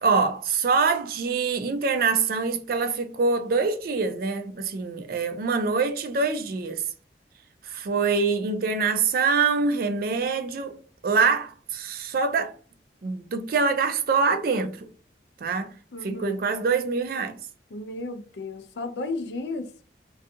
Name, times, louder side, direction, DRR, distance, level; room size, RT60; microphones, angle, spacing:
voice 1, 0.0-6.8 7.7-10.7 11.0-12.5 13.0-14.8 15.4-15.7 16.0-17.3, right 4 dB, 55° right, 0.4 m, -24 dB
voice 2, 15.9-16.5 17.7-19.7, left 2 dB, 75° left, 0.4 m, -33 dB
2.5 x 2.3 x 2.6 m
head